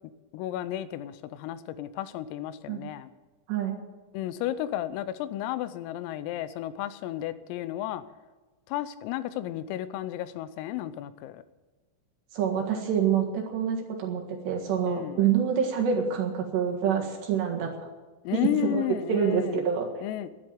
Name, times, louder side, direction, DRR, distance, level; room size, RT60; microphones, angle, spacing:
voice 1, 0.3-3.1 4.1-8.0 8.7-11.4 14.9-15.2 18.2-19.6 20.0-20.3, left 13 dB, 85° left, 14 dB, 3.4 m, -33 dB
voice 2, 12.3-17.7 18.3-18.4 18.7-19.9, right 7 dB, 65° right, 0 dB, 3.6 m, -27 dB
11.5 x 10.5 x 9.3 m, 1.2 s
omnidirectional pair, 5.9 m